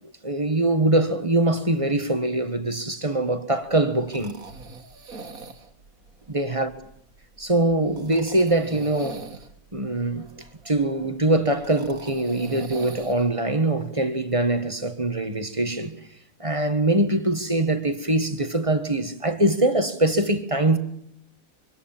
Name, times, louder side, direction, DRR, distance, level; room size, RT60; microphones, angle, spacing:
voice 1, 0.2-4.3 6.3-6.7 7.4-9.3 9.7-15.9 16.4-20.8, right 2 dB, 20° right, 1.6 m, -23 dB
sound 1, 3.7-13.3, right 3 dB, 60° right, 2.2 m, -42 dB
25.0 x 24.0 x 7.4 m
omnidirectional pair, 1.7 m